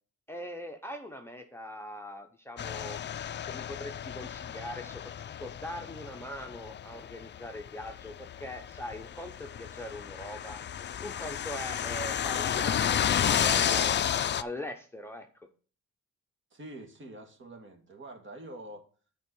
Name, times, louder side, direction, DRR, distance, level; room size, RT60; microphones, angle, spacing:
voice 1, 0.3-5.1 5.4-10.6 11.0-13.9 14.4-15.3, left 1 dB, 10° left, 3 dB, 0.9 m, -42 dB
sound 1, 2.6-14.4, left 9 dB, 40° left, 0.4 m, -32 dB
voice 2, 16.5-18.8, right 1 dB, 40° right, 5 dB, 2.0 m, -46 dB
7.7 x 4.7 x 7.0 m, 0.41 s
cardioid pair, 90°, 30 cm